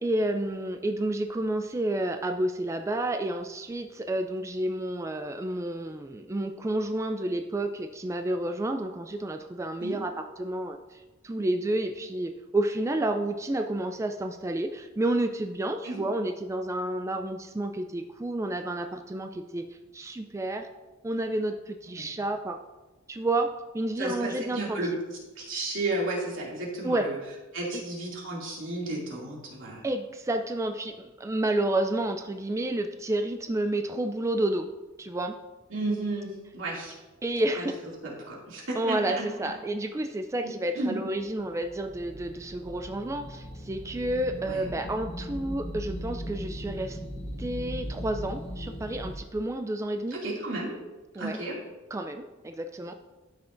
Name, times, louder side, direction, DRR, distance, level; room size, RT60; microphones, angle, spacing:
voice 1, 0.0-19.7 19.9-20.7 21.0-22.6 23.1-24.8 26.8-27.1 27.7-27.8 29.8-34.7 35.0-35.4 37.2-37.8 38.8-47.0 47.4-50.2 51.2-51.4 51.9-52.9, right 1 dB, 15° right, 6 dB, 0.3 m, -30 dB
voice 2, 24.0-24.9 25.4-27.2 27.5-29.8 35.7-36.9 37.6-37.7 38.0-39.2 40.7-41.0 44.4-44.7 50.1-50.7 51.2-51.6, right 2 dB, 85° right, -4 dB, 2.5 m, -33 dB
sound 1, 41.4-49.2, equal, 30° left, 1.0 m, -38 dB
13.0 x 5.9 x 2.6 m, 1.2 s
head